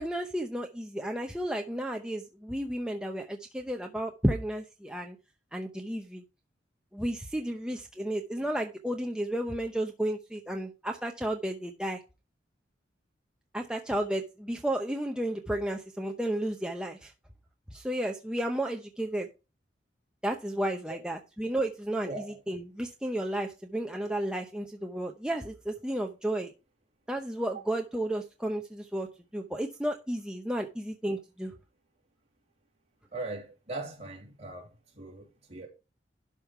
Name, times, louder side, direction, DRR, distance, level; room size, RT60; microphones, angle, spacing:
voice 1, 0.0-5.2 5.5-6.2 6.9-12.0 13.5-17.1 17.7-19.3 20.2-26.5 27.1-31.5, right 1 dB, 5° right, 0.8 m, -32 dB
voice 2, 33.1-35.7, right 2 dB, 35° right, 3.0 m, -40 dB
12.0 x 5.3 x 4.6 m
head